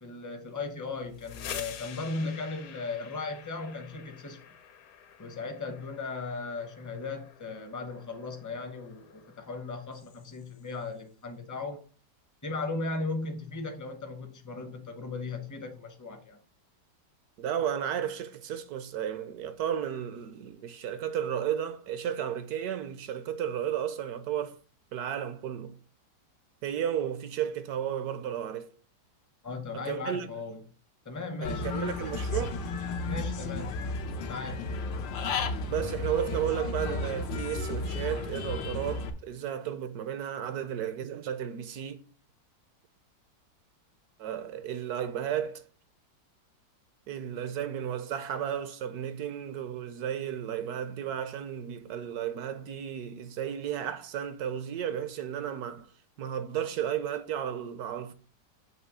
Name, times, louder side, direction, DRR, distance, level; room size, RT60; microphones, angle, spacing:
voice 1, 0.0-4.4 5.2-11.8 12.4-16.4 29.4-30.6 31.0-31.7 33.0-33.8 34.3-34.7, left 3 dB, 25° left, 0.4 m, -37 dB
sound 1, 1.0-10.7, left 8 dB, 65° left, 1.0 m, -48 dB
voice 2, 17.4-24.6 24.9-25.8 26.6-28.7 29.7-30.3 31.4-32.6 35.7-42.0 44.2-45.6 47.1-55.9 56.2-58.1, right 9 dB, 70° right, 1.0 m, -33 dB
Human voice / Bird, 31.4-39.1, left 3 dB, 90° left, 1.5 m, -33 dB
7.7 x 3.0 x 6.0 m
omnidirectional pair, 1.9 m